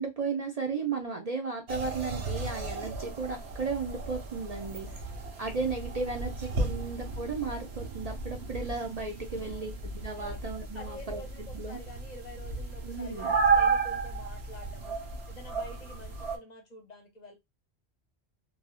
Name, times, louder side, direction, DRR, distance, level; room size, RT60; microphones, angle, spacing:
voice 1, 0.0-4.9 5.4-11.2 11.5-11.8 12.8-13.4, right 4 dB, 45° right, 0.6 m, -35 dB
sound 1, 1.7-16.4, right 4 dB, 80° right, 1.1 m, -33 dB
voice 2, 4.5-5.2 6.6-7.0 9.4-9.7 10.2-15.0 15.3-17.4, left 2 dB, 45° left, 0.7 m, -48 dB
3.1 x 2.6 x 2.2 m
omnidirectional pair, 1.1 m